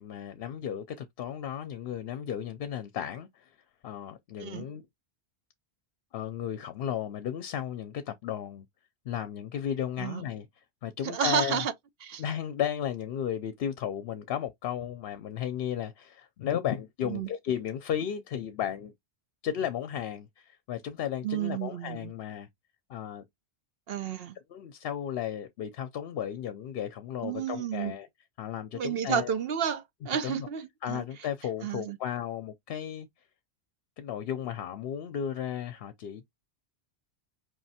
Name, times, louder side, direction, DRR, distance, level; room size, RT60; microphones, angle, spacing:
voice 1, 0.0-3.6 3.8-4.8 6.1-8.6 9.1-11.6 12.2-18.9 19.4-22.5 22.9-23.2 24.5-28.1 28.4-29.3 30.2-30.5 30.8-33.1 34.0-36.4, left 9 dB, 65° left, 0.7 m, -34 dB
voice 2, 11.0-11.7 12.0-12.2 17.0-17.3 21.2-22.1 23.9-24.4 27.2-27.9 28.7-31.0 31.6-32.0, right 8 dB, 65° right, 0.8 m, -31 dB
4.8 x 3.1 x 2.8 m
omnidirectional pair, 1.1 m